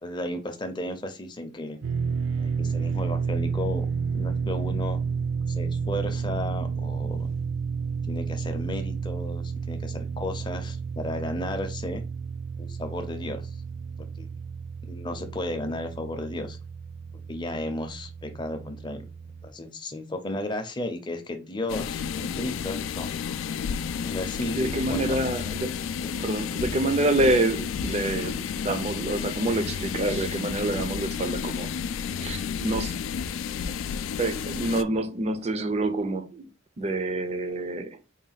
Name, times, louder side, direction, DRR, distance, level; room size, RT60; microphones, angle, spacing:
voice 1, 0.0-1.8 2.4-3.9 4.1-5.0 5.5-7.3 8.1-12.0 12.6-13.5 14.2-14.3 14.8-16.6 17.3-19.0 19.4-23.1 23.9-24.6 24.9-25.2, left 1 dB, 25° left, 0.5 m, -34 dB
sound 1, 1.8-19.5, right 5 dB, 80° right, 0.5 m, -31 dB
sound 2, 21.7-34.8, left 7 dB, 80° left, 0.3 m, -31 dB
voice 2, 24.5-25.7 26.2-31.7 32.2-33.0 34.2-36.5 36.8-38.0, right 2 dB, 35° right, 0.4 m, -27 dB
3.8 x 2.2 x 3.9 m
head